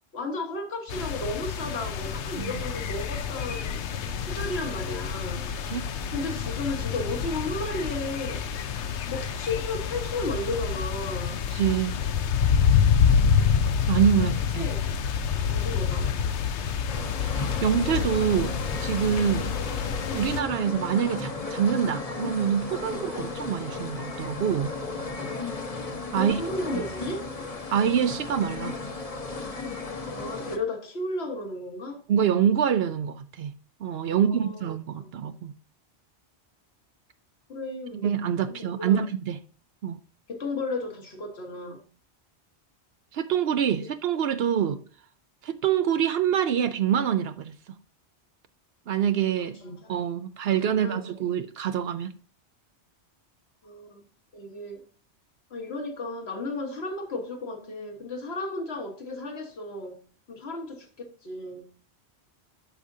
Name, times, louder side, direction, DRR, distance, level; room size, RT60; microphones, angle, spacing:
voice 1, 0.1-3.8 4.2-5.5 6.1-8.5 9.1-11.4 14.5-14.9 15.5-16.1 22.9-23.0 26.1-27.3 28.6-28.7 30.1-32.0 34.1-34.7 34.9-35.1 37.5-38.1 38.5-39.0 40.3-41.8 49.4-50.0 50.5-51.0 53.6-54.1 54.3-54.8 55.5-60.0 60.3-61.7, left 2 dB, 65° left, 1.7 m, -34 dB
sound 1, 0.9-20.4, left 7 dB, 85° left, 1.0 m, -27 dB
voice 2, 11.5-12.0 13.9-14.7 17.6-19.5 20.1-24.7 26.1-26.4 26.7-26.8 27.7-28.8 32.1-33.5 33.8-35.5 38.0-39.4 39.8-40.0 43.1-44.8 45.4-47.5 48.9-49.6 49.9-52.1, right 8 dB, 70° right, 0.8 m, -25 dB
sound 2, 16.9-30.6, left 3 dB, 35° left, 1.0 m, -35 dB
12.0 x 5.0 x 2.7 m
omnidirectional pair, 1.1 m